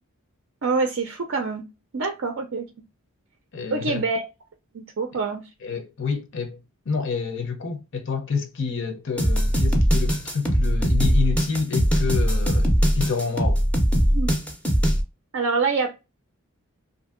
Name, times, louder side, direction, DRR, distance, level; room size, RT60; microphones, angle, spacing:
voice 1, 0.6-1.7 1.9-2.7 3.7-4.2 4.7-5.5 14.1-14.3 15.3-15.9, right 4 dB, 55° right, 0.4 m, -25 dB
voice 2, 3.5-4.0 5.6-6.6 6.9-13.6, left 5 dB, 55° left, 0.6 m, -29 dB
sound 1, 9.2-15.0, equal, 5° left, 0.5 m, -20 dB
2.6 x 2.6 x 2.4 m
head